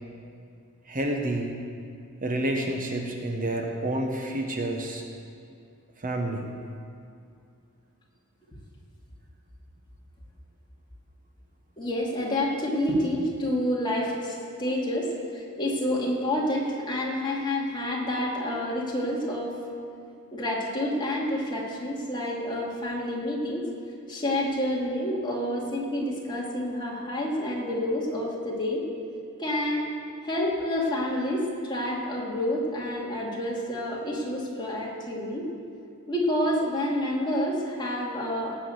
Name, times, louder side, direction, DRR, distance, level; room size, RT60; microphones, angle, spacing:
voice 1, 0.9-1.6 2.2-5.0 6.0-6.5, right 1 dB, 40° right, 2 dB, 1.1 m, -29 dB
voice 2, 11.8-19.6 20.3-23.7 24.1-28.9 29.4-29.9 30.2-35.5 36.1-38.6, left 1 dB, 20° left, -4 dB, 2.4 m, -28 dB
18.0 x 6.3 x 7.9 m, 2.5 s
head